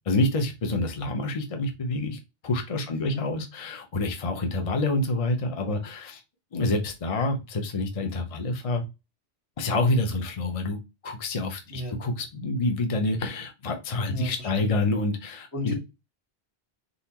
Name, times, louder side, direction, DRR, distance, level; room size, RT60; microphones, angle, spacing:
voice 1, 0.1-6.2 6.5-8.8 9.6-10.8 11.0-15.7, left 2 dB, 35° left, 4 dB, 0.7 m, -27 dB
voice 2, 14.1-14.8 15.5-15.7, left 1 dB, 75° left, -1 dB, 2.0 m, -33 dB
4.0 x 3.9 x 2.9 m, 0.25 s
omnidirectional pair, 1.1 m